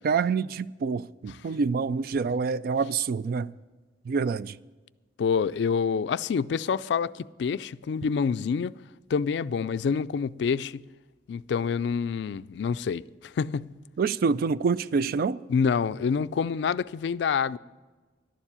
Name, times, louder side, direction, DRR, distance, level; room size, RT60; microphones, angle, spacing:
voice 1, 0.0-3.5 4.1-4.6 14.0-15.4, right 5 dB, 55° right, 0.3 m, -26 dB
voice 2, 5.2-8.7 9.1-10.8 11.3-13.7 15.5-17.6, left 6 dB, 65° left, 0.3 m, -27 dB
11.5 x 7.2 x 9.8 m
head